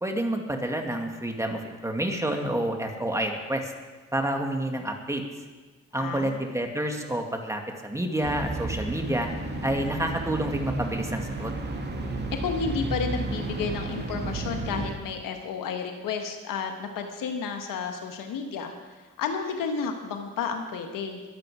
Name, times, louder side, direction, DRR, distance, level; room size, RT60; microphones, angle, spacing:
voice 1, 0.0-3.7 4.1-5.2 5.9-9.3 9.6-11.5, right 1 dB, 10° right, 3 dB, 2.3 m, -29 dB
voice 2, 6.0-6.5 12.3-21.2, left 5 dB, 85° left, 5 dB, 1.5 m, -32 dB
sound 1, 8.2-14.9, right 2 dB, 30° right, 2.4 m, -32 dB
22.5 x 7.7 x 5.0 m, 1.3 s
cardioid pair, 65°, 32 cm